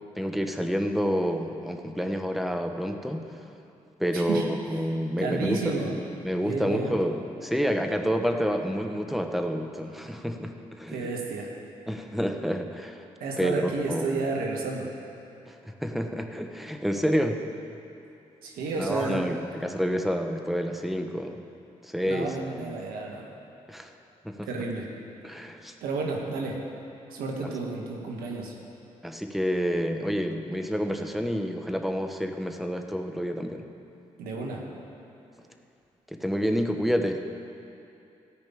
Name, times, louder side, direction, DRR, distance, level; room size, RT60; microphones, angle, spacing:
voice 1, 0.2-3.3 4.0-5.7 6.2-11.1 11.9-13.0 13.4-14.2 15.5-17.4 18.8-21.4 21.8-22.3 22.6-22.7 23.7-23.9 24.2-24.5 25.2-25.7 27.4-27.5 29.0-33.6 36.1-37.2, equal, ahead, 5 dB, 1.1 m, -29 dB
voice 2, 4.1-4.5 5.2-5.9 6.4-6.9 10.9-11.5 13.2-14.9 18.4-19.2 22.0-23.3 24.4-24.9 25.8-26.6 27.1-28.5 34.2-34.6, right 3 dB, 80° right, 0 dB, 1.5 m, -31 dB
14.0 x 5.3 x 8.7 m, 2.7 s
supercardioid pair, 45°, 15 cm